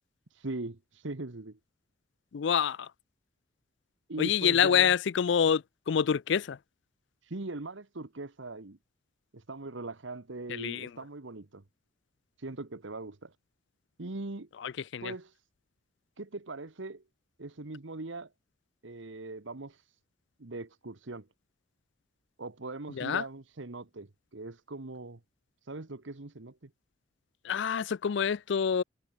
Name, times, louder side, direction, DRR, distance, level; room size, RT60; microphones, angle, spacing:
voice 1, 0.3-1.6 4.1-4.9 7.2-8.8 9.3-11.6 12.4-13.4 14.0-14.5 15.0-15.4 16.2-17.0 17.4-18.3 18.8-20.0 20.4-21.3 22.4-25.2 25.6-26.7, right 2 dB, 70° right, 1.2 m, -40 dB
voice 2, 2.3-2.9 4.2-6.6 10.5-10.9 14.6-15.1 22.9-23.2 27.4-28.8, left 7 dB, 60° left, 0.4 m, -27 dB
head